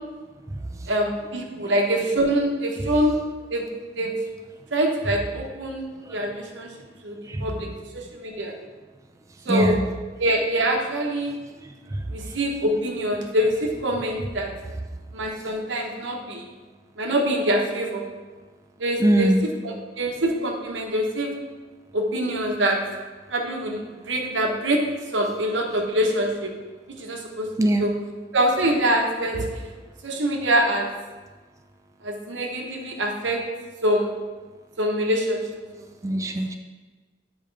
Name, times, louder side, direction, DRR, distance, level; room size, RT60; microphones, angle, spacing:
voice 1, 0.9-3.2 3.5-3.7 4.0-4.1 4.7-6.7 7.0-8.5 9.4-9.8 10.2-11.3 12.1-14.5 15.1-16.4 17.0-18.0 18.8-19.3 19.6-21.3 21.9-22.8 23.3-24.8 25.1-26.5 27.0-27.9 28.3-29.5 30.0-30.9 32.0-33.4 33.8-34.1 34.8-35.4 35.7-35.8, right 1 dB, 85° right, 1 dB, 1.1 m, -24 dB
voice 2, 9.5-9.8 11.6-12.0 19.0-19.4 27.6-27.9 36.0-36.6, right 1 dB, 15° right, 5 dB, 0.3 m, -22 dB
8.2 x 5.0 x 3.3 m, 1.3 s
head